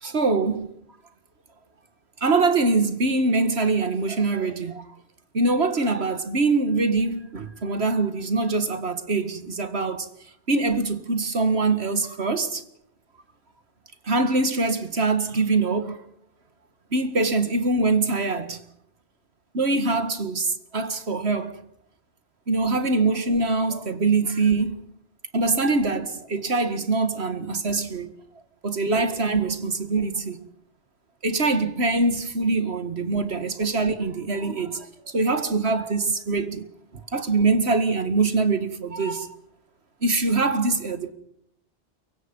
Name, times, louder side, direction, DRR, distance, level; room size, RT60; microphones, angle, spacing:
voice 1, 0.0-0.7 2.2-4.9 5.3-10.1 10.5-12.6 14.0-16.0 16.9-18.6 19.5-21.5 22.5-24.8 25.3-28.1 28.6-30.4 31.2-36.7 36.9-39.4 40.0-41.1, right 3 dB, 75° right, 2.2 m, -23 dB
28.0 x 24.0 x 5.5 m
omnidirectional pair, 1.1 m